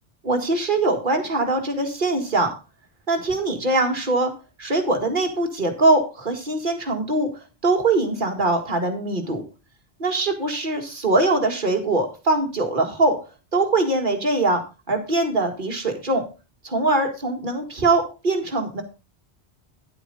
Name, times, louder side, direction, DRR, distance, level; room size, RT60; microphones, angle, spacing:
voice 1, 0.2-2.5 3.1-4.3 4.6-7.3 7.6-9.4 10.0-13.2 13.5-16.2 16.6-18.8, right 2 dB, 50° right, 4 dB, 2.1 m, -22 dB
9.9 x 9.2 x 3.9 m, 0.30 s
omnidirectional pair, 1.1 m